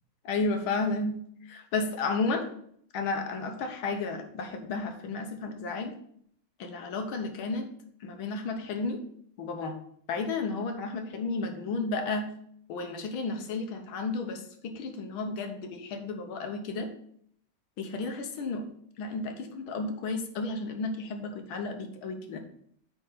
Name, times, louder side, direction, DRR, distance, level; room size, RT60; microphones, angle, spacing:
voice 1, 0.3-1.2 1.5-2.5 2.9-5.9 6.6-7.7 8.0-9.0 9.4-9.8 10.1-12.3 12.7-16.9 17.8-18.7 19.0-22.4, left 3 dB, 80° left, 5 dB, 1.8 m, -32 dB
8.3 x 3.6 x 6.7 m, 0.67 s
omnidirectional pair, 2.2 m